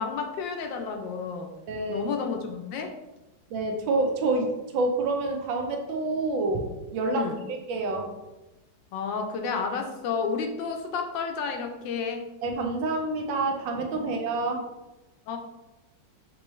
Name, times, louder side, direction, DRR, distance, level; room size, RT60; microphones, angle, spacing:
voice 1, 0.0-1.5 1.9-2.9 7.1-7.4 8.9-12.2 13.9-14.1 14.4-14.5 15.3-15.4, left 5 dB, 75° left, 4 dB, 1.2 m, -31 dB
voice 2, 1.7-2.1 3.5-8.1 12.4-14.6, right 3 dB, 75° right, 3 dB, 1.4 m, -28 dB
5.4 x 3.1 x 3.1 m, 1.0 s
omnidirectional pair, 2.2 m